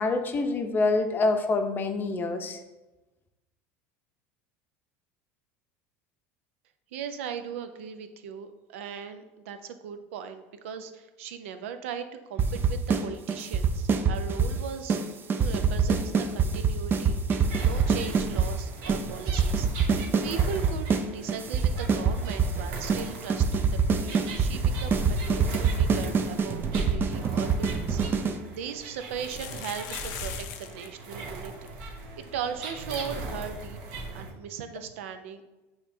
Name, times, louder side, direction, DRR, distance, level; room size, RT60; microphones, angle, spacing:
voice 1, 0.0-2.6, left 3 dB, 30° left, 6 dB, 0.6 m, -26 dB
voice 2, 6.9-15.0 15.4-31.5 31.8-35.4, right 7 dB, 85° right, 9 dB, 0.5 m, -38 dB
sound 1, 12.4-13.0 13.3-14.6 14.9-15.0 15.3-18.5 18.9-19.0 19.3-21.0 21.3-22.6 22.9-23.0 23.3-28.4, right 6 dB, 35° right, 0.4 m, -24 dB
sound 2, 17.3-34.3, right 2 dB, 70° right, 0.9 m, -38 dB
sound 3, 27.9-28.0 29.1-30.9 31.1-31.2 31.4-31.7 32.2-32.3 32.6-32.7 34.7-34.8, left 10 dB, 70° left, 0.5 m, -40 dB
6.6 x 3.0 x 2.7 m, 1.1 s
supercardioid pair, 100°, 7 cm